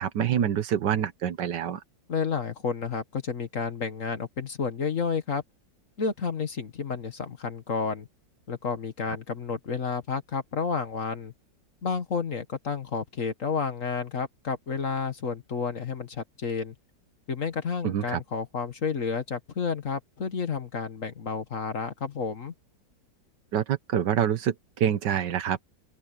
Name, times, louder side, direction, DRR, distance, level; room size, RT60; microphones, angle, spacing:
voice 1, 0.0-1.8 17.8-18.2 23.5-25.6, right 9 dB, 70° right, 1.6 m, -26 dB
voice 2, 2.1-5.4 6.0-8.1 8.5-11.3 11.8-16.7 17.3-22.5, left 5 dB, 45° left, 1.7 m, -31 dB
open air
omnidirectional pair, 2.0 m